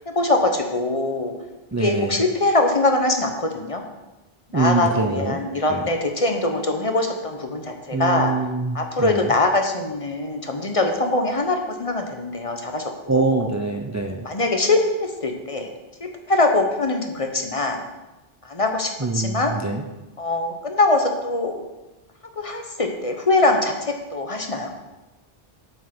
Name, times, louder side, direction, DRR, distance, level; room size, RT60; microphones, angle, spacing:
voice 1, 0.1-1.3 1.8-3.8 4.5-8.3 8.7-13.5 14.2-15.7 16.0-17.8 18.4-19.5 20.2-21.5 22.4-24.7, left 2 dB, 35° left, 4 dB, 0.9 m, -22 dB
voice 2, 1.7-2.2 4.5-5.4 5.7-5.8 7.9-9.3 13.1-14.3 19.0-19.8, right 3 dB, 25° right, 3 dB, 0.4 m, -24 dB
7.6 x 5.4 x 6.0 m, 1.1 s
omnidirectional pair, 1.0 m